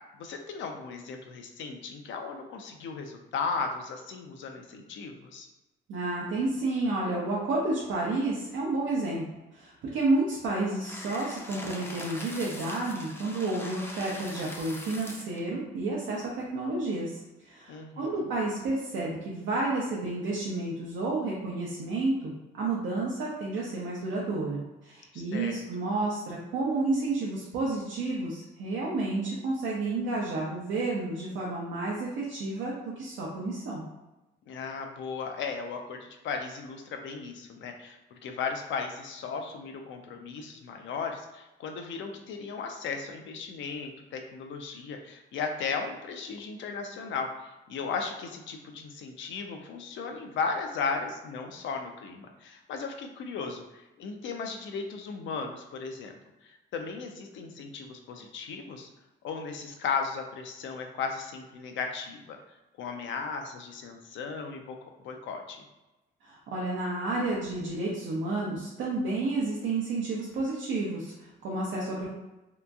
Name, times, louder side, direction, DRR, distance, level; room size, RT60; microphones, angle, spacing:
voice 1, 0.2-5.5 17.7-18.3 25.1-25.6 34.5-56.2 56.4-58.9 59.2-62.4 62.8-64.8 65.0-65.6, left 5 dB, 70° left, 4 dB, 0.5 m, -36 dB
voice 2, 5.9-9.2 9.5-33.8 66.2-72.1, right 2 dB, 75° right, -5 dB, 0.6 m, -31 dB
sound 1, 10.8-15.4, left 1 dB, 10° left, 0.4 m, -42 dB
2.8 x 2.5 x 2.3 m, 1.0 s
cardioid pair, 90°, 20 cm